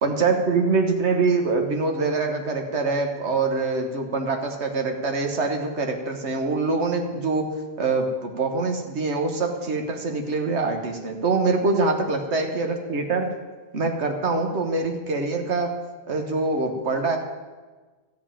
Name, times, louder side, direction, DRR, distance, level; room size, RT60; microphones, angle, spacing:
voice 1, 0.0-7.5 7.8-13.3 13.7-15.7 16.1-17.2, right 3 dB, 90° right, 4 dB, 1.6 m, -24 dB
13.0 x 5.3 x 8.8 m, 1.3 s
omnidirectional pair, 1.1 m